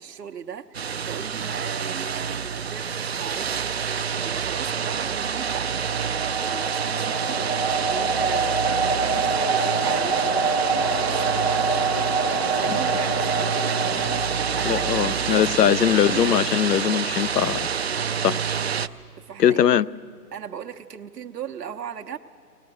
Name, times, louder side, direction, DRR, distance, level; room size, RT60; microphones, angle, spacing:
voice 1, 0.0-3.8 4.2-5.7 6.4-7.5 7.8-11.5 12.5-14.2 14.5-15.8 16.0-16.3 19.2-19.8 20.3-22.2, right 8 dB, 85° right, 3 dB, 1.0 m, -37 dB
sound 1, 0.7-18.9, right 7 dB, 45° right, 0.4 m, -27 dB
sound 2, 4.8-15.6, right 4 dB, 25° left, 0.4 m, -26 dB
voice 2, 14.6-17.7 18.2-18.4 19.4-19.9, left 10 dB, 85° left, 19 dB, 0.6 m, -21 dB
22.5 x 19.0 x 7.6 m, 2.8 s
hypercardioid pair, 155°, 47 cm